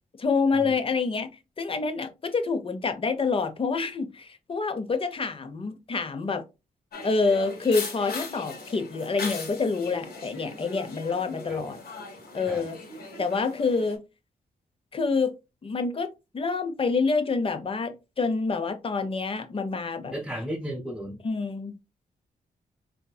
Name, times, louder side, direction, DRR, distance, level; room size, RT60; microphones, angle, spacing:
voice 1, 0.2-1.3 1.6-6.4 7.0-11.8 12.3-12.8 13.2-14.0 14.9-15.3 15.6-20.1 21.2-21.8, left 4 dB, 35° left, 0.6 m, -27 dB
sound 1, 6.9-14.0, left 3 dB, 75° left, 1.3 m, -39 dB
voice 2, 20.1-21.2, equal, ahead, 1.1 m, -34 dB
4.4 x 2.7 x 2.3 m
wide cardioid pair, 120°, 16 cm